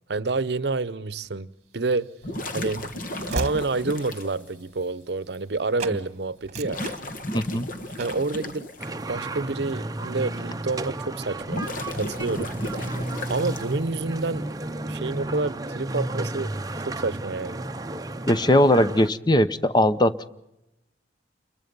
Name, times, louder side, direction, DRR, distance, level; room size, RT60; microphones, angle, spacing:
voice 1, 0.1-1.5 1.7-2.1 2.5-2.9 3.3-6.8 8.0-11.7 11.9-12.8 13.3-14.5 14.8-17.6, right 3 dB, 65° right, 0.7 m, -28 dB
Train / Slam, 1.9-5.5 5.8-6.0 6.4-7.6 8.0-8.3, right 2 dB, 40° right, 1.4 m, -37 dB
sound 1, 2.2-4.3 5.3-5.4 6.6-8.9 11.3-13.9, left 1 dB, 50° left, 1.7 m, -34 dB
voice 2, 7.3-7.7 18.3-20.3, left 1 dB, 25° left, 0.8 m, -20 dB
sound 2, 8.8-19.1, right 2 dB, 20° right, 0.7 m, -33 dB
29.0 x 22.0 x 5.4 m
head